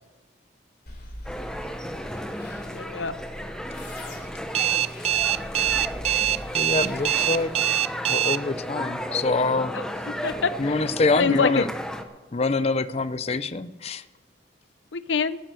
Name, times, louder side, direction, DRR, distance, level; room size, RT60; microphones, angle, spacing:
sound 1, 0.9-7.5, left 1 dB, 55° left, 3.6 m, -42 dB
sound 2, 1.3-12.0, equal, 5° left, 0.9 m, -34 dB
voice 1, 2.7-3.1 9.7-9.8 10.2-10.9 11.2-11.7 14.9-15.4, left 5 dB, 75° left, 14 dB, 0.7 m, -25 dB
Alarm, 4.5-8.4, right 11 dB, 35° right, 0.3 m, -23 dB
voice 2, 6.5-7.5 8.1-9.7 10.6-11.7 12.3-14.0, left 3 dB, 35° left, 15 dB, 0.5 m, -25 dB
12.5 x 11.0 x 6.8 m, 1.2 s
head